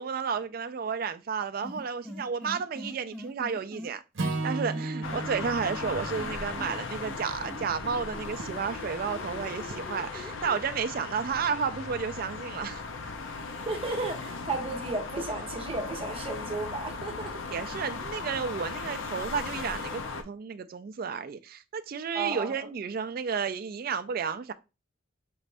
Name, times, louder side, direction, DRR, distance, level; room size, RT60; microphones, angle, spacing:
voice 1, 0.0-12.8 17.5-24.5, right 6 dB, 45° right, 0.3 m, -32 dB
sound 1, 1.6-3.9 4.7-6.7 7.0-10.6, equal, 5° left, 0.6 m, -43 dB
Acoustic guitar / Strum, 4.1-8.5, right 2 dB, 60° right, 0.8 m, -36 dB
sound 2, 5.0-20.2, left 4 dB, 65° left, 0.6 m, -37 dB
voice 2, 13.7-17.5 22.1-22.7, right 3 dB, 25° right, 0.9 m, -34 dB
5.2 x 2.5 x 3.3 m
head